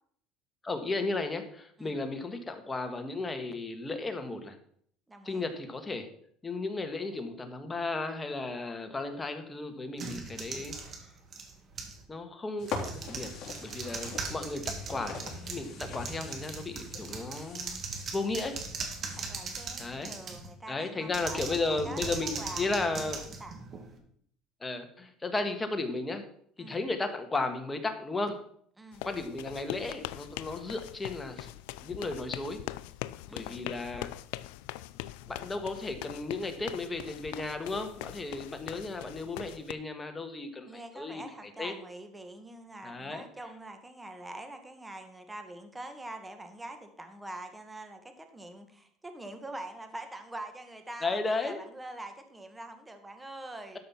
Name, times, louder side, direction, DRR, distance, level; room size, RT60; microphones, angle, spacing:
voice 1, 0.6-4.6 5.2-6.1 6.4-10.8 12.1-13.3 13.6-18.6 19.8-20.1 20.7-23.2 24.6-26.2 26.6-28.4 29.0-31.5 31.8-32.6 33.3-34.1 35.3-41.2 41.6-41.7 42.8-43.2 51.0-51.6, left 3 dB, 15° left, 6 dB, 1.6 m, -34 dB
voice 2, 5.1-5.4 14.6-15.0 19.1-23.7 26.6-26.8 28.8-29.1 33.3-33.7 38.3-38.4 40.6-53.8, right 2 dB, 10° right, 7 dB, 1.5 m, -45 dB
sound 1, 10.0-12.0 12.6-20.5 21.1-24.0, right 4 dB, 40° right, 2.0 m, -40 dB
sound 2, 12.6-19.7, left 4 dB, 45° left, 3.7 m, -43 dB
sound 3, 28.9-39.7, left 16 dB, 85° left, 0.4 m, -42 dB
12.5 x 5.5 x 5.8 m, 0.64 s
cardioid pair, 115°, 0 cm